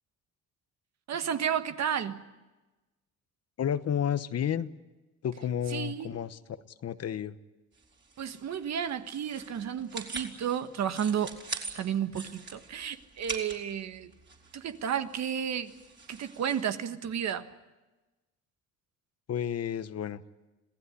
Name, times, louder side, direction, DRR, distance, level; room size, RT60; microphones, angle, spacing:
voice 1, 1.1-2.2 5.7-6.1 8.2-11.3 11.7-14.1 14.5-15.7 16.1-17.5, right 8 dB, 60° right, 9 dB, 1.6 m, -32 dB
voice 2, 3.6-4.7 5.2-7.4 19.3-20.2, left 9 dB, 55° left, 13 dB, 1.1 m, -31 dB
sound 1, 7.7-16.6, right 4 dB, 35° right, 4.3 m, -44 dB
26.5 x 17.0 x 9.8 m, 1.1 s
cardioid pair, 90°, 30 cm